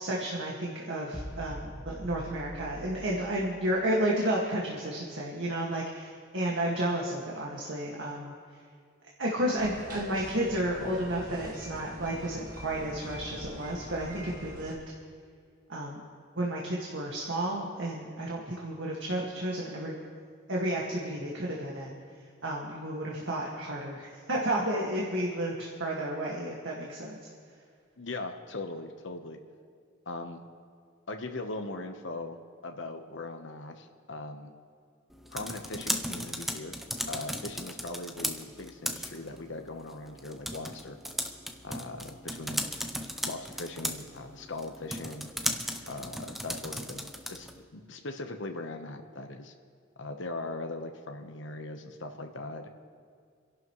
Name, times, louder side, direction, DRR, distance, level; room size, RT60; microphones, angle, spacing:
voice 1, 0.0-8.3 9.2-14.8 15.7-16.0 16.4-20.0 20.5-22.0 22.4-27.2, right 1 dB, 70° right, -3 dB, 1.9 m, -32 dB
sound 1, 1.1-4.6, right 1 dB, 15° right, 1.6 m, -44 dB
sound 2, 9.6-14.7, equal, 40° right, 1.9 m, -44 dB
voice 2, 28.0-29.4 30.1-30.4 31.1-34.5 35.3-36.8 37.1-41.0 41.6-42.7 43.2-45.3 45.9-49.5 50.0-52.7, left 2 dB, 70° left, 5 dB, 1.1 m, -40 dB
sound 3, 35.1-47.6, equal, ahead, 0.6 m, -37 dB
29.5 x 11.5 x 3.2 m, 2.1 s
head